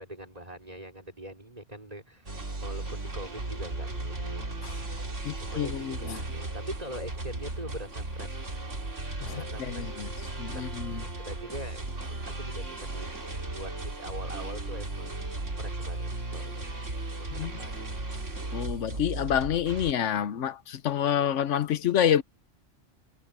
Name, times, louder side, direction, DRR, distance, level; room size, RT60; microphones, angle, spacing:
voice 1, 0.0-4.4 5.4-8.5 9.3-10.1 10.5-10.6 10.9-11.8 12.4-13.3 13.5-16.7 17.1-17.9, right 1 dB, 30° right, 5.0 m, -43 dB
sound 1, 2.3-19.9, right 2 dB, 80° right, 3.6 m, -36 dB
voice 2, 5.2-6.2 9.2-10.1 10.4-11.0 17.4-17.5 18.5-22.2, left 9 dB, 75° left, 1.1 m, -28 dB
omnidirectional pair, 1.2 m